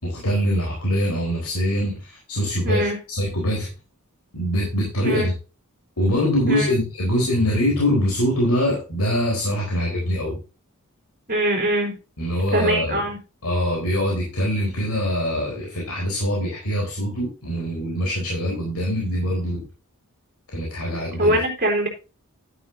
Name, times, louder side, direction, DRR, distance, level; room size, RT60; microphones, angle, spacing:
voice 1, 0.0-3.7 4.3-5.3 6.0-10.4 12.2-13.0 13.4-19.6 20.5-21.4, equal, 85° left, -2 dB, 4.2 m, -23 dB
voice 2, 2.6-3.0 5.0-5.3 6.5-6.7 11.3-11.9 12.5-13.2 21.2-21.9, right 1 dB, 40° right, 2 dB, 3.4 m, -22 dB
11.0 x 9.3 x 2.7 m, 0.32 s
head